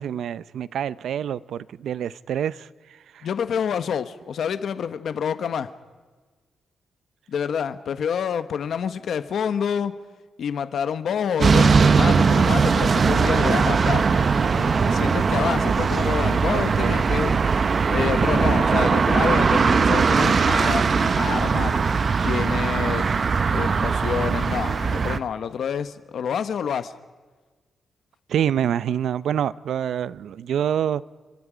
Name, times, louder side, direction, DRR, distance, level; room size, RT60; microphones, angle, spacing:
voice 1, 0.0-2.7 3.1-3.3 16.5-17.0 28.3-31.0, right 9 dB, 75° right, 0.6 m, -26 dB
voice 2, 3.2-5.7 7.3-9.9 10.4-14.1 14.6-17.4 17.9-21.8 22.2-23.1 23.5-26.9, left 7 dB, 60° left, 1.0 m, -27 dB
sound 1, 11.4-25.2, right 5 dB, 35° right, 0.7 m, -20 dB
29.0 x 24.5 x 5.1 m
wide cardioid pair, 150°, 0 cm